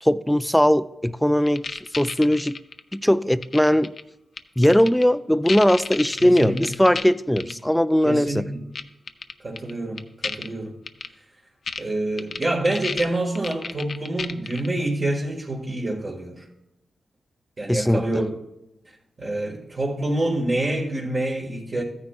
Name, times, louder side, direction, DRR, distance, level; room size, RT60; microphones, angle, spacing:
voice 1, 0.0-2.6 2.9-3.9 4.6-8.5 17.7-18.0, equal, 5° left, 0.4 m, -19 dB
sound 1, 1.5-2.9 3.4-4.0 4.4-5.0 5.5-7.0 7.4-7.5 8.7-8.8 9.1-9.7 10.0-10.5 10.9-11.1 11.7-11.8 12.2-14.7, left 4 dB, 60° left, 0.6 m, -31 dB
voice 2, 6.2-6.7 8.0-8.6 9.4-10.8 11.8-16.5 17.6-18.4 19.2-21.8, right 1 dB, 45° right, 1.5 m, -27 dB
14.5 x 9.6 x 2.3 m
cardioid pair, 70°, 0 cm